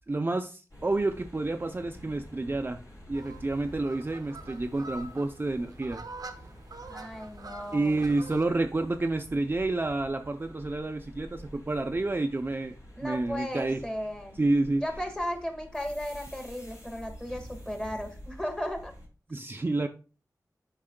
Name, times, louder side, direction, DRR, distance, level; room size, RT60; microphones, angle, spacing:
voice 1, 0.1-2.8 3.1-6.0 7.7-12.8 13.0-13.8 14.4-14.9 19.3-19.9, right 2 dB, 30° right, 6 dB, 0.5 m, -29 dB
sound 1, 0.7-19.1, equal, 55° left, 3.2 m, -49 dB
sound 2, 3.1-8.5, right 2 dB, 65° right, 0.6 m, -46 dB
voice 2, 6.9-8.1 13.0-14.4 14.8-18.9, equal, 10° left, 5 dB, 1.6 m, -35 dB
8.4 x 5.4 x 2.2 m, 0.34 s
wide cardioid pair, 75°, 7 cm